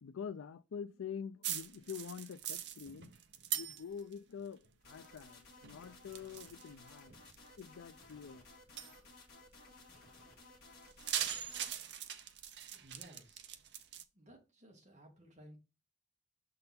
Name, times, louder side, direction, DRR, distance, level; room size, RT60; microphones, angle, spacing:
voice 1, 0.0-3.1 3.5-7.1 7.6-8.5 8.9-9.0, left 7 dB, 90° left, 0.4 m, -46 dB
sound 1, 1.4-4.2 4.5-5.3 5.6-7.6 8.1-8.2 8.8-9.0 10.8-14.0, right 10 dB, 55° right, 0.6 m, -41 dB
sound 2, 4.8-11.7, left 2 dB, 50° left, 1.9 m, -58 dB
voice 2, 12.7-13.5 14.1-15.6, equal, 35° right, 1.9 m, -58 dB
6.7 x 3.9 x 4.2 m
head